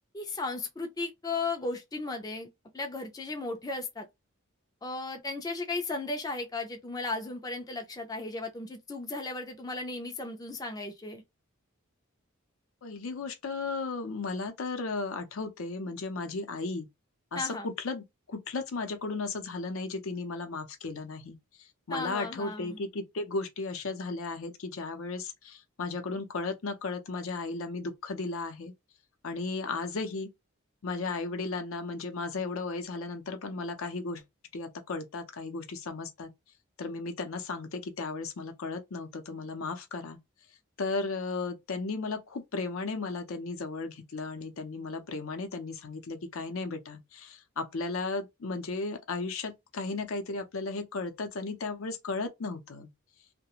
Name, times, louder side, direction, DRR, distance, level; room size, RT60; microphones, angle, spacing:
voice 1, 0.1-2.5 2.7-4.1 4.8-11.2 17.3-17.7 21.9-22.8, left 3 dB, 15° left, 0.4 m, -35 dB
voice 2, 12.8-16.9 17.3-28.7 29.2-30.3 30.8-34.2 34.5-36.3 36.8-40.2 40.8-52.9, left 3 dB, 75° left, 0.5 m, -35 dB
2.3 x 2.1 x 2.8 m
head